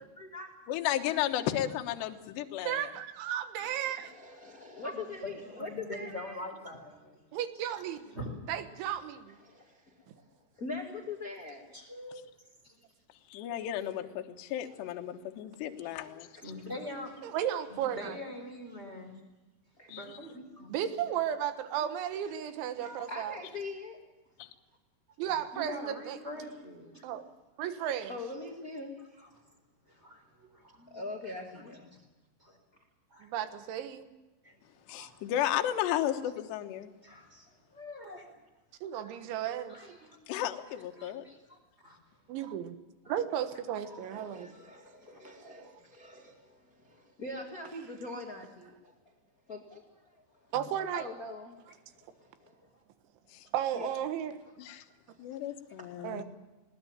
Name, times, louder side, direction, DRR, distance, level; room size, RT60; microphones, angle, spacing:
voice 1, 0.2-0.5 3.6-6.4 9.4-10.2 10.5-11.6 16.3-16.4 19.8-20.0 22.1-22.4 22.8-24.0 28.1-29.2 30.8-31.9 43.9-48.9 49.5-50.2 50.9-51.6 51.9-52.6 53.7-53.9 55.1-55.2 55.8-56.2, left 3 dB, 50° left, 2 dB, 1.0 m, -43 dB
voice 2, 0.7-2.9 13.3-16.3 19.9-20.0 24.4-24.5 34.9-36.9 40.3-41.2 53.3-53.5 54.6-54.8 55.2-56.2, left 12 dB, 70° left, 5 dB, 3.2 m, -33 dB
voice 3, 2.7-4.1 7.3-8.2 8.5-9.4 10.1-10.2 17.2-18.2 20.7-23.4 25.2-26.2 27.0-27.2 27.6-28.2 33.2-34.1 38.8-40.0 42.3-42.8 43.1-44.5 45.4-45.7 50.5-51.1 53.5-54.3 56.0-56.2, right 10 dB, 75° right, 10 dB, 3.7 m, -34 dB
voice 4, 4.8-7.2 7.7-7.8 8.1-8.3 11.7-12.3 12.6-12.8 15.7-17.2 17.7-19.2 19.9-20.7 22.8-23.3 25.3-27.0 28.0-28.1 29.2-29.5 29.9-31.0 31.3-31.4 32.4-32.6 33.1-33.3 34.4-34.6 34.9-35.1 37.0-38.3 39.0-39.3 39.7-40.2 41.0-42.0 43.8-44.5 45.0-45.1 54.7-54.8, left 1 dB, 15° right, 2 dB, 3.9 m, -45 dB
21.0 x 18.5 x 8.8 m, 1.1 s
omnidirectional pair, 5.5 m